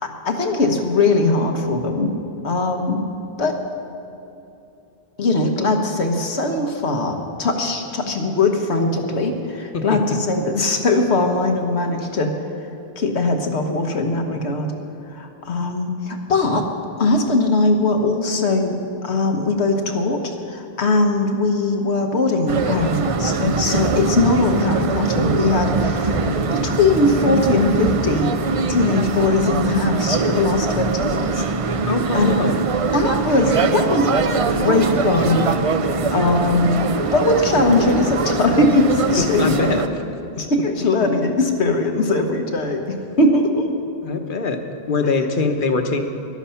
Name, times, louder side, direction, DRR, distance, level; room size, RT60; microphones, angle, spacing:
voice 1, 0.0-2.1 2.4-3.0 3.4-3.6 5.2-12.3 13.0-14.7 15.1-16.6 17.0-18.7 19.0-20.2 20.5-26.2 26.5-31.4 32.1-32.3 32.9-34.1 34.5-35.5 36.1-39.6 40.4-42.8 43.2-43.7, left 2 dB, 85° left, 4 dB, 1.5 m, -20 dB
voice 2, 9.7-10.2 26.5-26.6 31.9-32.6 39.2-39.8 40.4-40.5 44.0-44.6 44.9-46.0, left 4 dB, 55° left, 6 dB, 1.1 m, -22 dB
sound 1, 22.5-39.9, right 4 dB, 45° right, 0.5 m, -22 dB
14.0 x 11.5 x 5.7 m, 2.9 s
omnidirectional pair, 1.1 m